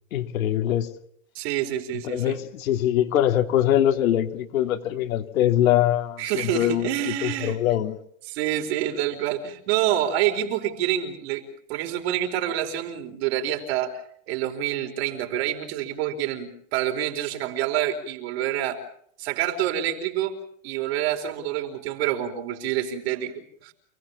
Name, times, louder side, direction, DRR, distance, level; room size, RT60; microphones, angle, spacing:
voice 1, 0.1-0.9 2.0-6.9 7.2-8.0, left 12 dB, 80° left, 5 dB, 3.2 m, -23 dB
voice 2, 1.3-2.4 6.2-7.6 8.3-11.4 11.7-14.0 14.3-18.8 19.2-23.7, right 11 dB, 50° right, 4 dB, 4.7 m, -27 dB
29.0 x 18.5 x 7.2 m, 0.67 s
supercardioid pair, 175°, 40 cm